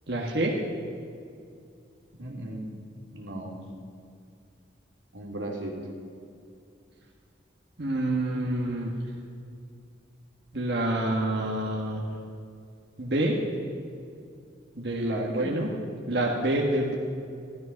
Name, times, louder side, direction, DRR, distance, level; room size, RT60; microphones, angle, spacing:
voice 1, 0.1-0.5 7.8-8.9 10.5-12.1 13.0-13.4 14.8-15.7 16.1-16.9, right 1 dB, 60° right, -3 dB, 1.6 m, -27 dB
voice 2, 2.2-2.7 3.1-3.6 5.1-5.7 14.9-15.5, right 1 dB, 90° right, -1 dB, 3.0 m, -34 dB
15.5 x 12.5 x 5.9 m, 2.4 s
head